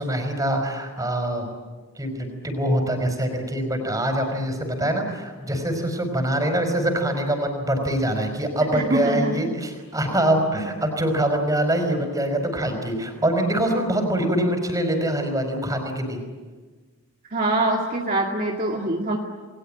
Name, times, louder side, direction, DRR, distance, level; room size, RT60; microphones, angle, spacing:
voice 1, 0.0-1.5 2.0-16.2, right 1 dB, 15° right, 5 dB, 4.9 m, -24 dB
voice 2, 8.7-9.3 17.3-19.2, right 2 dB, 40° right, -1 dB, 2.2 m, -24 dB
29.5 x 21.5 x 8.9 m, 1.4 s
head